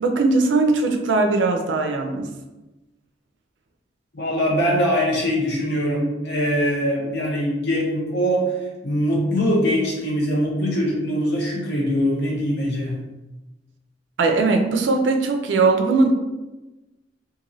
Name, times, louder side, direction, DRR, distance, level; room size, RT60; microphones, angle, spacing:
voice 1, 0.0-2.3 14.2-16.1, right 3 dB, 75° right, 4 dB, 0.4 m, -19 dB
voice 2, 4.1-8.5 8.8-13.0, equal, 60° left, -4 dB, 0.9 m, -22 dB
2.9 x 2.6 x 2.6 m, 1.1 s
head